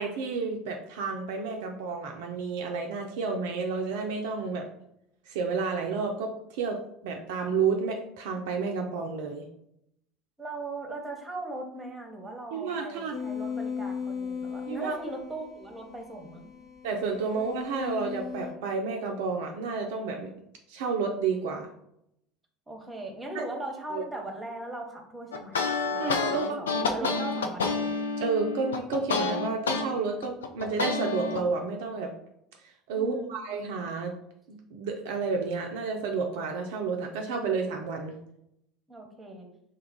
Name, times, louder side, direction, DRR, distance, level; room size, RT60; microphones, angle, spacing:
voice 1, 0.0-4.7 5.3-9.5 12.5-13.1 14.7-15.0 16.8-20.3 20.7-21.7 23.3-23.4 23.9-24.0 26.0-26.6 28.2-32.1 32.6-34.1 34.5-38.2, right 4 dB, 60° right, 2 dB, 0.3 m, -31 dB
voice 2, 10.4-16.5 22.7-27.9 32.9-33.3 38.9-39.5, right 2 dB, 15° right, 3 dB, 0.8 m, -39 dB
sound 1, 13.1-18.5, left 6 dB, 30° left, 0.8 m, -37 dB
sound 2, 25.3-29.8 30.2-31.4, left 4 dB, 75° left, 0.4 m, -28 dB
2.9 x 2.3 x 3.6 m, 0.77 s
figure-of-eight pair, 65°, 0 cm